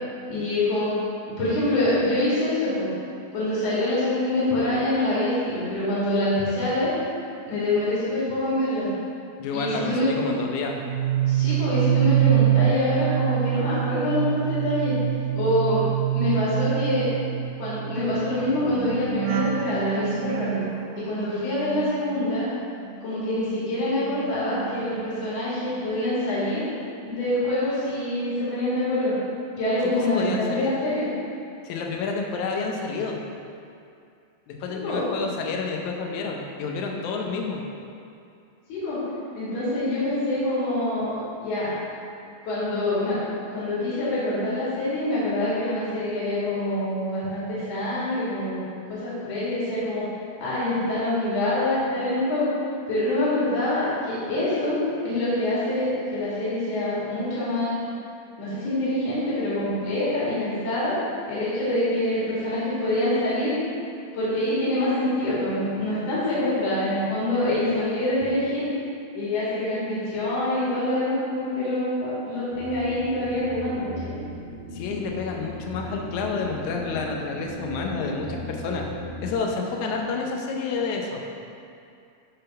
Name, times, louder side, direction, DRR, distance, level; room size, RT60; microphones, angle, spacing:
voice 1, 0.3-1.0 1.3-2.9 3.3-6.9 7.4-8.9 9.5-10.1 11.3-15.0 15.3-15.9 16.1-17.1 17.6-20.6 21.0-22.5 23.0-26.6 27.0-29.1 29.6-31.1 34.7-35.1 38.7-39.0 39.3-41.7 42.4-43.2 43.5-48.6 48.9-50.1 50.4-52.5 52.9-54.8 55.0-57.9 58.4-61.0 61.3-63.5 64.1-68.6 69.1-74.1, left 1 dB, 50° left, -10 dB, 2.9 m, -25 dB
voice 2, 9.4-10.7 29.9-30.8 31.6-33.2 34.5-37.6 74.7-78.8 79.2-81.2, left 4 dB, 75° left, 1 dB, 1.8 m, -29 dB
sound 1, 10.7-23.0 23.3-25.4 25.7-26.1, right 12 dB, 85° right, 2.4 m, -26 dB
sound 2, 72.5-79.3, equal, 60° right, 1.7 m, -37 dB
9.5 x 4.0 x 5.4 m, 2.4 s
omnidirectional pair, 4.4 m